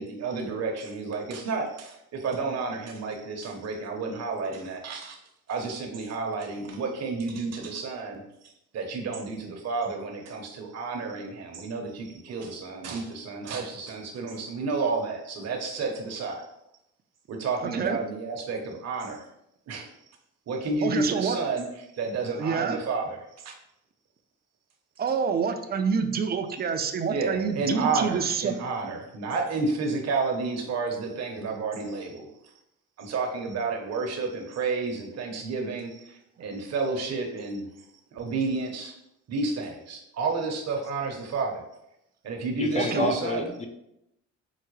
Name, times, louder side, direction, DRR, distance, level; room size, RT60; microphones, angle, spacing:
voice 1, 0.0-5.2 5.5-16.4 17.3-19.3 19.7-19.9 20.5-21.6 21.9-23.5 27.1-32.3 33.0-37.7 38.1-38.9 39.3-41.6 42.2-43.5, right 4 dB, 60° right, 2 dB, 0.8 m, -31 dB
voice 2, 17.6-18.0 20.8-21.4 22.3-22.8 25.0-28.6 42.8-43.1, right 6 dB, 30° right, 7 dB, 0.4 m, -27 dB
voice 3, 42.6-43.7, left 3 dB, 25° left, 5 dB, 0.5 m, -29 dB
4.7 x 2.1 x 3.1 m, 0.81 s
cardioid pair, 90°, 30 cm